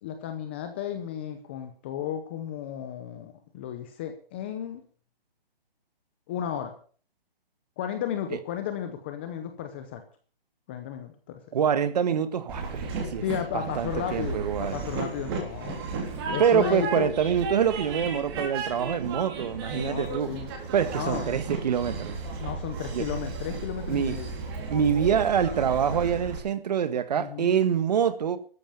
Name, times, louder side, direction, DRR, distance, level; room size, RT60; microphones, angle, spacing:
voice 1, 0.0-4.8 6.3-6.8 7.8-10.0 10.7-11.4 13.2-15.8 16.3-17.1 19.7-20.5 20.9-21.3 22.4-24.3 27.1-27.6, left 9 dB, 10° left, 0.6 m, -34 dB
voice 2, 11.5-13.2 13.5-14.8 16.4-20.4 20.7-22.2 22.9-23.1 23.9-24.2 24.7-28.4, right 8 dB, 45° right, 1.6 m, -25 dB
Train, 12.5-26.4, right 4 dB, 25° right, 3.5 m, -34 dB
13.5 x 10.0 x 7.0 m
hypercardioid pair, 165°, 30 cm